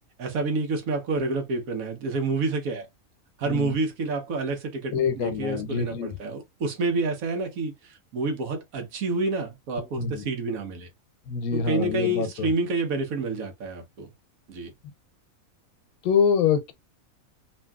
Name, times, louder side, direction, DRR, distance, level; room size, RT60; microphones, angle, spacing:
voice 1, 0.2-2.9 3.4-10.9 11.5-14.1 14.5-14.7, right 3 dB, 75° right, 1.3 m, -28 dB
voice 2, 4.9-6.1 9.8-10.3 11.3-12.5 16.0-16.7, left 6 dB, 90° left, 1.1 m, -25 dB
2.8 x 2.6 x 2.2 m
omnidirectional pair, 1.5 m